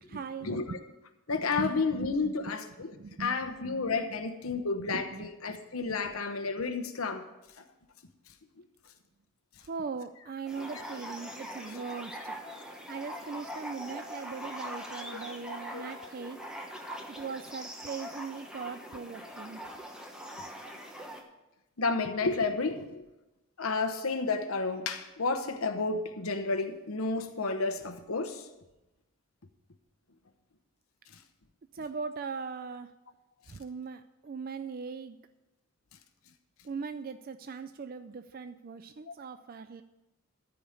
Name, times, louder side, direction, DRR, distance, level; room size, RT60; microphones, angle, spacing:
voice 1, 0.1-0.8 1.3-2.5 2.9-3.4 4.8-5.3 9.7-12.4 12.9-16.5 17.1-19.6 31.7-32.9 33.5-35.2 36.6-39.8, right 5 dB, 45° right, 10 dB, 0.4 m, -40 dB
voice 2, 1.3-2.9 3.2-7.2 15.5-15.9 21.8-23.0 23.6-28.4, left 4 dB, 85° left, 7 dB, 1.0 m, -31 dB
sound 1, 10.5-21.2, equal, 5° right, 1.1 m, -42 dB
13.5 x 5.0 x 8.7 m, 1.0 s
head